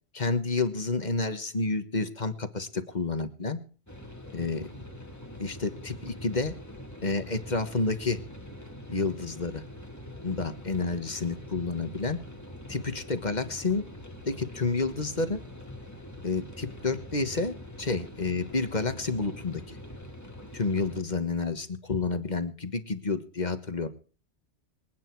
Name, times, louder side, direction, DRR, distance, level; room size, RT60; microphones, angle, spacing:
voice 1, 0.1-3.6 4.3-4.7 5.4-6.5 7.0-8.2 8.9-9.6 10.2-12.2 12.7-13.8 14.3-15.4 16.2-19.8 20.5-23.9, left 3 dB, 40° left, 10 dB, 1.6 m, -30 dB
sound 1, 3.9-21.0, equal, 15° left, 2.0 m, -44 dB
26.5 x 9.5 x 4.7 m, 0.40 s
omnidirectional pair, 1.1 m